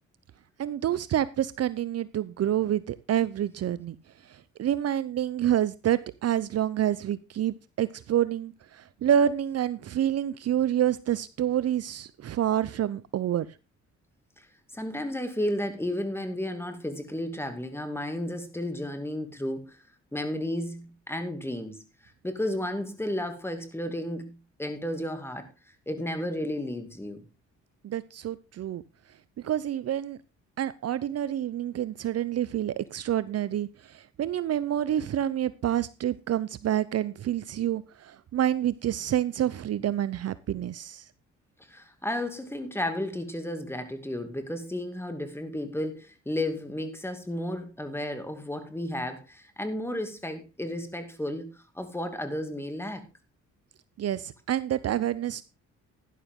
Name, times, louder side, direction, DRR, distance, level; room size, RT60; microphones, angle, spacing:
voice 1, 0.6-4.0 4.3-13.5 27.8-28.8 29.4-30.2 30.6-41.0 54.0-55.4, right 11 dB, 55° right, 0.7 m, -28 dB
voice 2, 14.7-19.8 20.1-27.2 41.6-53.0, left 1 dB, 10° left, 2.5 m, -33 dB
12.0 x 11.0 x 3.7 m
cardioid pair, 90°, 30 cm